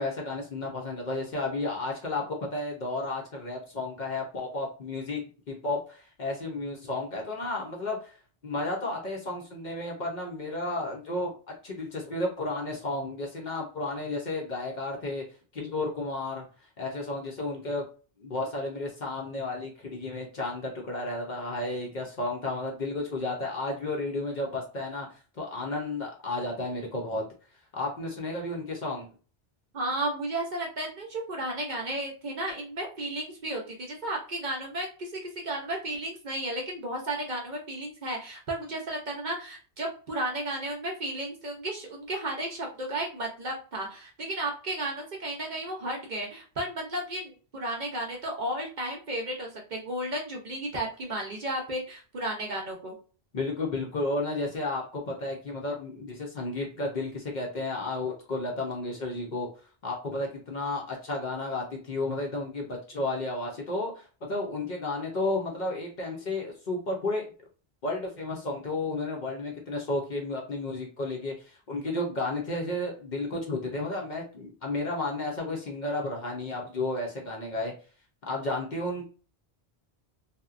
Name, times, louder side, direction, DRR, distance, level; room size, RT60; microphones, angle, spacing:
voice 1, 0.0-5.2 5.5-8.1 8.4-11.3 11.6-15.2 15.5-16.4 16.8-17.9 18.2-27.2 27.7-29.1 53.3-59.5 59.8-67.2 67.8-77.7 78.3-79.0, left 2 dB, 50° left, -1 dB, 0.6 m, -32 dB
voice 2, 29.7-52.9, right 1 dB, 50° right, 0 dB, 0.7 m, -33 dB
2.8 x 2.1 x 2.4 m, 0.37 s
omnidirectional pair, 1.1 m